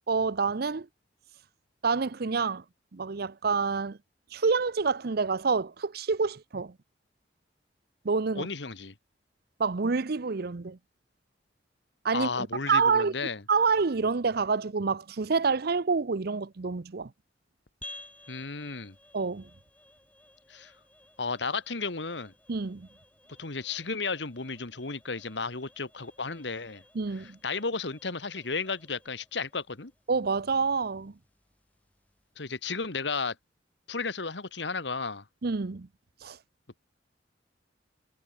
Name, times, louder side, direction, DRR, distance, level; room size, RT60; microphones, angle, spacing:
voice 1, 0.1-0.9 1.8-2.6 2.9-4.0 4.3-6.7 8.0-8.5 9.6-10.8 12.0-13.1 13.5-17.1 19.1-19.5 22.5-22.9 26.9-27.4 30.1-31.1 35.4-35.9 36.2-36.4, right 4 dB, 55° right, 0.7 m, -27 dB
voice 2, 8.3-8.9 12.1-13.4 18.3-18.9 20.5-20.7 21.2-22.3 23.4-26.8 27.4-29.9 32.4-33.3 33.9-35.2, left 4 dB, 70° left, 1.7 m, -33 dB
sound 1, 17.8-32.4, left 1 dB, 10° left, 6.1 m, -55 dB
head